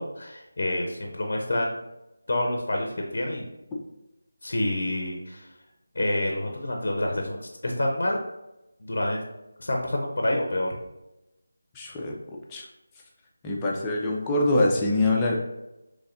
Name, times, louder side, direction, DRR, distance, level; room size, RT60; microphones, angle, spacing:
voice 1, 0.0-1.8 2.3-3.5 4.4-5.5 5.9-8.2 8.8-9.2 9.6-10.8, left 1 dB, 55° left, 2 dB, 0.6 m, -28 dB
voice 2, 11.7-12.2 12.5-12.6 13.4-15.4, left 2 dB, 15° left, -2 dB, 0.5 m, -24 dB
4.0 x 3.2 x 2.5 m, 0.94 s
figure-of-eight pair, 165°, 0 cm